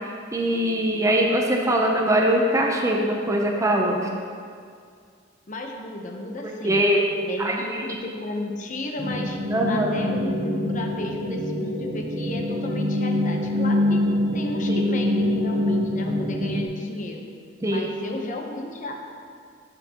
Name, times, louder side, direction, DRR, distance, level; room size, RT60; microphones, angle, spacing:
voice 1, 0.3-4.2 6.6-7.0 7.4-7.8 9.5-9.9 14.7-14.9 17.6-17.9, right 1 dB, 15° right, 0 dB, 0.6 m, -22 dB
voice 2, 5.5-6.8 7.2-9.4 9.7-14.0 14.3-17.2 17.6-19.0, left 2 dB, 45° left, 2 dB, 0.8 m, -33 dB
sound 1, 9.0-16.6, left 1 dB, 70° right, 0.9 m, -25 dB
11.5 x 5.8 x 2.9 m, 2.2 s
head